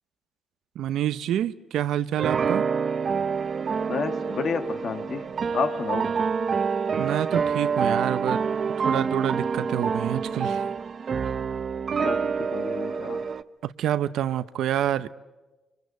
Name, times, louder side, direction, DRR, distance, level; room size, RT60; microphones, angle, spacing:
voice 1, 0.7-2.7 7.0-8.4 8.8-10.6 13.6-15.1, right 11 dB, 80° right, 0.8 m, -27 dB
sound 1, 2.2-13.4, right 6 dB, 45° right, 0.8 m, -27 dB
voice 2, 3.9-5.3 5.5-6.1 12.0-13.3, left 5 dB, 55° left, 1.6 m, -30 dB
26.5 x 25.5 x 8.2 m
cardioid pair, 90°, 0 cm